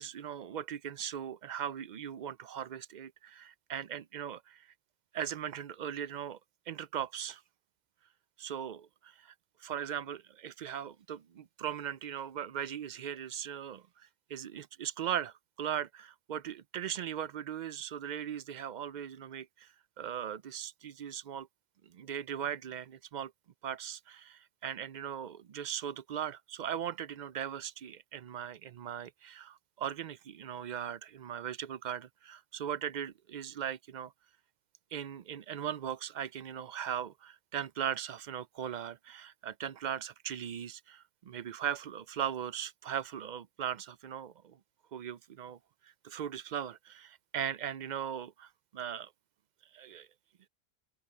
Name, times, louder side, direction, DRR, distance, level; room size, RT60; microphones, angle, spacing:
voice 1, 0.0-4.7 5.1-6.4 6.7-7.4 8.4-9.3 9.6-21.5 21.8-23.3 23.6-34.1 34.9-44.6 44.9-45.6 45.8-49.1 49.7-50.1, right 9 dB, 55° right, 0.6 m, -39 dB
open air
omnidirectional pair, 1.1 m